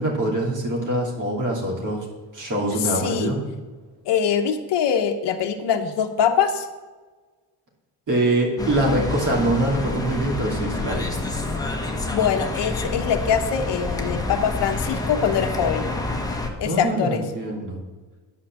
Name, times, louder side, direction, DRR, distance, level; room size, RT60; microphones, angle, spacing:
voice 1, 0.0-2.0 2.3-3.4 8.1-11.1 16.6-17.8, right 1 dB, 45° right, -2 dB, 2.9 m, -24 dB
voice 2, 2.8-3.3 4.1-6.7 12.1-15.9 16.6-17.2, left 8 dB, 70° left, 5 dB, 1.1 m, -23 dB
sound 1, 8.6-16.5, left 2 dB, 10° left, 1.4 m, -28 dB
9.8 x 5.8 x 7.3 m, 1.3 s
cardioid pair, 105°, 42 cm